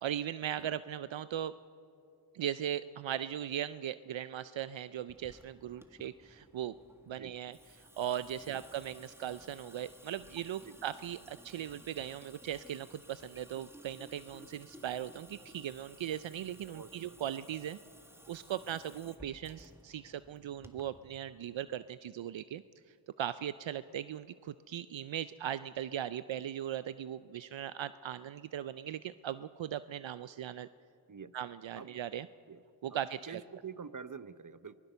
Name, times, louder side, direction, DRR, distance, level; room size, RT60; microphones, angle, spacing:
voice 1, 0.0-1.5 2.3-6.7 7.1-17.8 18.3-22.6 23.2-30.7 31.3-32.3 32.8-33.4, right 10 dB, 75° right, 14 dB, 0.6 m, -39 dB
Water tap faucet / Sink (filling or washing) / Drip, 5.1-21.1, equal, 5° right, 1.8 m, -57 dB
voice 2, 16.7-17.2 31.1-31.4 31.7-32.0 32.5-32.6 33.3-34.8, right 6 dB, 40° right, 14 dB, 0.9 m, -46 dB
23.5 x 20.0 x 6.9 m, 2.7 s
cardioid pair, 45°, 45 cm